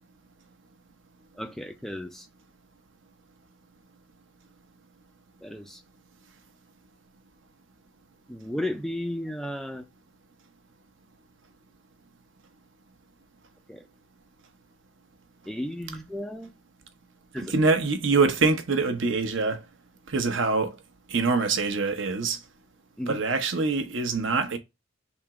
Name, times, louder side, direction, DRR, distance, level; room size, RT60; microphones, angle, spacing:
voice 1, 1.4-2.3 5.4-5.8 8.3-9.8 13.7-13.8 15.5-16.5 17.3-17.5 23.0-23.2, left 1 dB, ahead, 0.3 m, -34 dB
voice 2, 17.4-19.6 20.1-20.8 21.1-22.4 23.1-24.6, right 4 dB, 65° right, 0.8 m, -24 dB
3.5 x 2.9 x 4.7 m
head